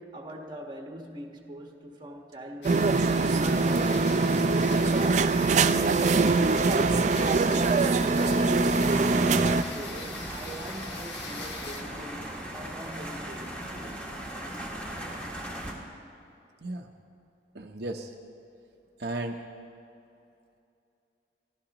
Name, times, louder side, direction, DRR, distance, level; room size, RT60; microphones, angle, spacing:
voice 1, 0.0-2.9 3.4-5.8 6.4-14.0, right 1 dB, 25° right, 2 dB, 1.3 m, -41 dB
sound 1, 2.6-11.8, left 4 dB, 80° left, 1.4 m, -42 dB
sound 2, 2.6-9.6, right 3 dB, 40° right, 0.4 m, -23 dB
sound 3, 8.9-15.7, right 1 dB, 5° left, 1.8 m, -38 dB
voice 2, 17.5-18.1 19.0-19.4, right 2 dB, 65° right, 2 dB, 0.8 m, -34 dB
23.0 x 15.0 x 3.0 m, 2.6 s
head